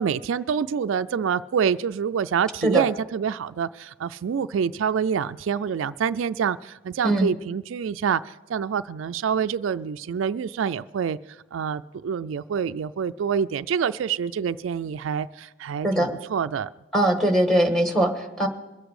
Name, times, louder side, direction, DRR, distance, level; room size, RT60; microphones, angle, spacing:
voice 1, 0.0-11.2 11.5-16.7, right 7 dB, 80° right, 13 dB, 0.4 m, -26 dB
voice 2, 16.9-18.5, right 1 dB, ahead, 3 dB, 1.4 m, -21 dB
22.5 x 8.1 x 4.8 m, 1.1 s
head